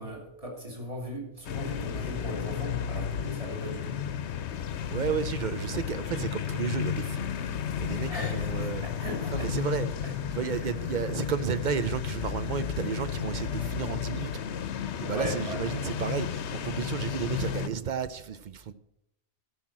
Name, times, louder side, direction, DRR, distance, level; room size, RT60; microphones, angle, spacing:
voice 1, 0.0-4.0 8.1-10.1 10.5-10.7 15.1-15.8, equal, 30° right, 3.0 m, -38 dB
sound 1, 1.4-17.7, left 8 dB, 70° left, 1.0 m, -33 dB
voice 2, 4.9-7.2 7.8-8.8 9.3-9.9 10.3-14.3 15.0-18.7, right 7 dB, 55° right, 0.5 m, -32 dB
13.0 x 5.7 x 7.4 m
omnidirectional pair, 1.2 m